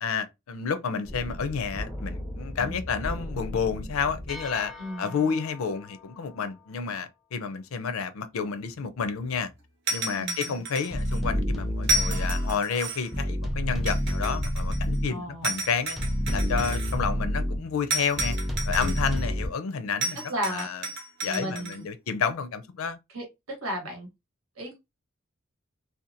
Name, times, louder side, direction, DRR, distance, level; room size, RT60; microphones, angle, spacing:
voice 1, 0.0-9.5 9.9-16.0 16.3-18.4 18.7-20.2 20.5-20.8 21.2-23.0, left 6 dB, 80° left, 0.4 m, -30 dB
sound 1, 1.0-6.0 8.7-8.8 9.0-9.1 10.9-12.6 13.1-15.1 16.0-17.6 18.2-19.5, equal, ahead, 0.5 m, -30 dB
voice 2, 4.8-5.2 10.2-10.6 15.1-15.6 18.8-19.1 20.3-20.7 21.3-21.8 23.1-24.1 24.6-24.8, equal, 85° right, 1.1 m, -35 dB
sound 2, 9.9-11.2 11.8-13.2 13.9-15.0 15.4-17.0 17.9-19.3 20.0-21.8, right 2 dB, 55° right, 0.8 m, -32 dB
2.8 x 2.2 x 2.5 m
head